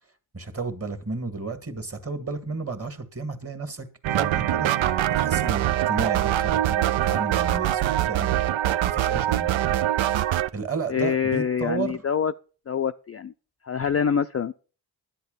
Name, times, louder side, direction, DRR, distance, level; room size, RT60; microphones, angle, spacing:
voice 1, 0.3-4.7 5.1-8.4 8.8-9.8 10.1-10.2 10.5-12.0, right 4 dB, 30° right, 10 dB, 1.9 m, -33 dB
sound 1, 4.0-10.5, right 13 dB, 75° right, 0.6 m, -23 dB
voice 2, 10.9-12.3 12.7-13.3 13.6-14.5, left 7 dB, 30° left, 9 dB, 0.4 m, -25 dB
10.5 x 8.6 x 5.4 m, 0.39 s
cardioid pair, 55°, 47 cm